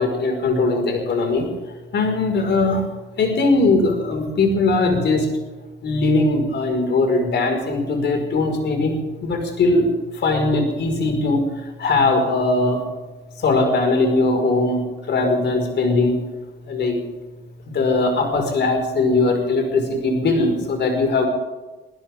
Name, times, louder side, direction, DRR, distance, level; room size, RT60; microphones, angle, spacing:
voice 1, 0.0-1.5 1.9-2.8 3.2-5.3 5.8-9.0 9.2-9.9 10.2-11.4 11.8-12.8 13.4-16.2 16.7-17.0 17.7-21.3, left 3 dB, 60° left, 4 dB, 5.3 m, -20 dB
22.5 x 16.0 x 3.7 m, 1.2 s
cardioid pair, 90°, 20 cm